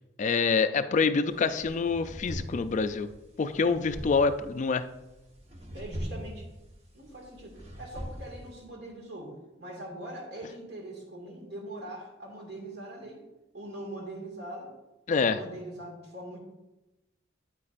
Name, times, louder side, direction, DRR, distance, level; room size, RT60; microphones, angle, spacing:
voice 1, 0.2-3.1 3.4-4.8 15.1-15.4, left 4 dB, 40° left, 10 dB, 0.3 m, -26 dB
sound 1, 1.3-8.7, equal, 35° right, 1.2 m, -42 dB
voice 2, 5.7-6.5 6.9-13.2 13.5-14.7 15.2-16.4, right 1 dB, 60° right, 0 dB, 2.0 m, -42 dB
8.8 x 8.4 x 2.5 m, 1.0 s
head